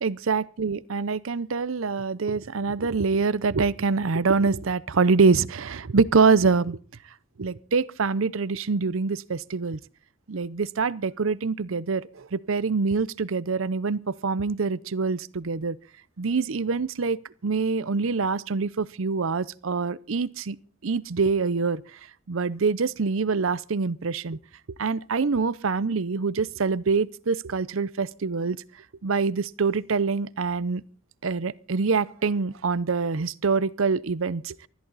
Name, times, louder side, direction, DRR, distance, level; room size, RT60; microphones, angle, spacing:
voice 1, 0.0-6.8 7.4-9.8 10.3-15.8 16.2-20.6 20.8-21.8 22.3-24.4 24.8-28.6 29.0-30.8 31.2-34.6, right 4 dB, 70° right, 0.6 m, -25 dB
20.0 x 14.0 x 4.0 m
head